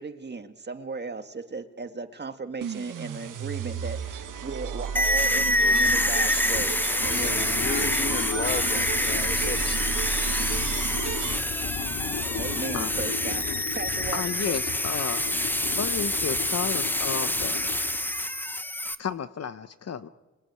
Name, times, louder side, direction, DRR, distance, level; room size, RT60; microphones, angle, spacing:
voice 1, 0.0-6.8 7.0-7.5 12.3-13.5 13.7-14.6, right 4 dB, 35° right, 8 dB, 1.7 m, -36 dB
sound 1, 2.6-11.8, right 7 dB, 75° right, 1.4 m, -33 dB
sound 2, 3.2-3.3 3.6-18.3, left 6 dB, 75° left, 2.2 m, -37 dB
sound 3, 5.0-19.0, left 1 dB, 5° left, 0.9 m, -27 dB
voice 2, 7.0-9.8, left 3 dB, 30° left, 9 dB, 1.6 m, -34 dB
voice 3, 14.1-17.7 19.0-20.1, left 7 dB, 50° left, 13 dB, 0.9 m, -33 dB
27.5 x 22.0 x 9.6 m, 1.2 s
cardioid pair, 90°, 32 cm